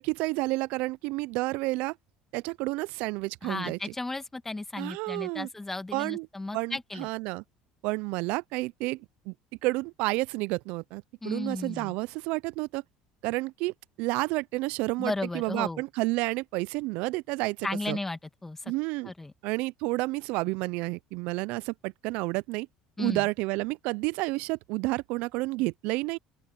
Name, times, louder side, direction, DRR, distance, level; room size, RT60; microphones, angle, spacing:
voice 1, 0.0-2.0 2.3-3.9 4.8-5.5 5.9-6.3 6.5-7.4 7.8-9.3 9.6-12.8 13.2-18.0 18.7-19.1 19.4-22.7 23.0-26.2, right 23 dB, 75° right, 0.4 m, -30 dB
voice 2, 3.4-7.1 11.2-12.0 15.0-15.8 17.6-18.7 19.0-19.3 23.0-23.3, left 2 dB, 15° left, 2.0 m, -35 dB
open air
supercardioid pair, 90°, 2 cm